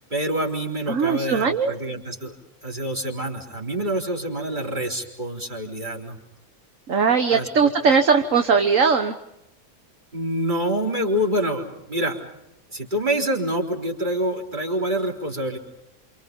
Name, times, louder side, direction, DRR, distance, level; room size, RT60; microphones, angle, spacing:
voice 1, 0.1-2.3 2.6-6.2 7.3-8.0 10.1-12.2 12.7-15.6, right 1 dB, 30° right, 1 dB, 4.2 m, -26 dB
voice 2, 0.9-1.7 6.9-9.2, right 5 dB, 60° right, 6 dB, 1.6 m, -19 dB
28.5 x 27.5 x 5.4 m, 0.86 s
omnidirectional pair, 1.6 m